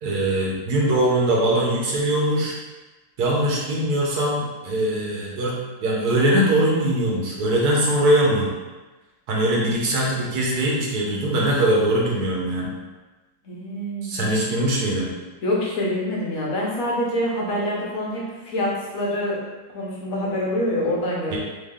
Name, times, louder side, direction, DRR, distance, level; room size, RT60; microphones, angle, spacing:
voice 1, 0.0-2.6 3.2-5.5 5.8-8.5 9.3-12.7 14.0-15.1 21.3-21.4, right 1 dB, 60° right, -3 dB, 1.4 m, -21 dB
voice 2, 13.4-14.5 15.4-19.4 19.7-21.4, left 1 dB, 55° left, -4 dB, 1.2 m, -26 dB
3.8 x 3.3 x 3.6 m, 1.2 s
omnidirectional pair, 2.0 m